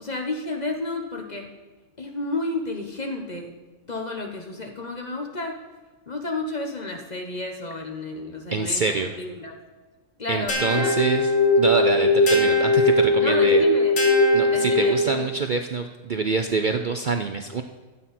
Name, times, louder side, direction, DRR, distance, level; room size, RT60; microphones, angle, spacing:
voice 1, 0.0-1.5 2.0-3.5 3.9-5.6 6.1-9.5 10.2-10.9 12.0-12.2 13.2-14.0 14.5-15.2, left 2 dB, 30° left, 3 dB, 1.1 m, -31 dB
voice 2, 8.5-9.1 10.3-11.3 11.6-13.6 14.3-17.6, right 4 dB, 60° right, 5 dB, 0.5 m, -25 dB
sound 1, 10.5-15.3, left 2 dB, 75° left, 2.5 m, -19 dB
13.0 x 8.6 x 4.3 m, 1.2 s
omnidirectional pair, 1.5 m